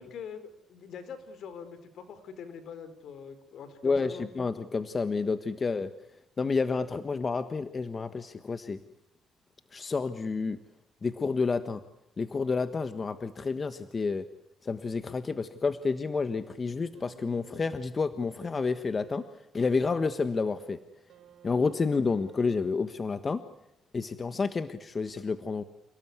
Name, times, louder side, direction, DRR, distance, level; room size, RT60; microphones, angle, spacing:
voice 1, 0.0-4.3, left 6 dB, 70° left, 11 dB, 4.3 m, -44 dB
voice 2, 3.8-5.9 6.4-8.8 9.7-10.6 11.0-11.8 12.2-14.3 14.6-19.2 19.5-20.8 21.4-23.4 23.9-25.6, left 4 dB, 35° left, 11 dB, 1.4 m, -29 dB
sound 1, 16.9-23.1 24.2-24.3, right 10 dB, 80° right, 4.3 m, -54 dB
29.0 x 18.0 x 9.7 m, 0.83 s
cardioid pair, 90°, 0 cm